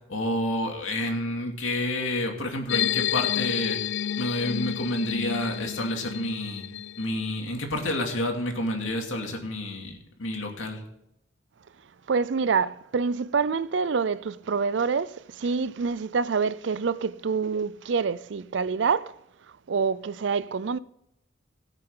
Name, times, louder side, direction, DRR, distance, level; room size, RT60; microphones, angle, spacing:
voice 1, 0.1-3.8 4.2-6.7 7.0-10.8, left 1 dB, 90° left, 2.6 m, -29 dB
sound 1, 2.7-7.4, left 11 dB, 65° left, 0.3 m, -30 dB
voice 2, 12.1-19.2 19.7-20.8, right 5 dB, 65° right, 0.5 m, -26 dB
17.0 x 9.1 x 3.8 m
head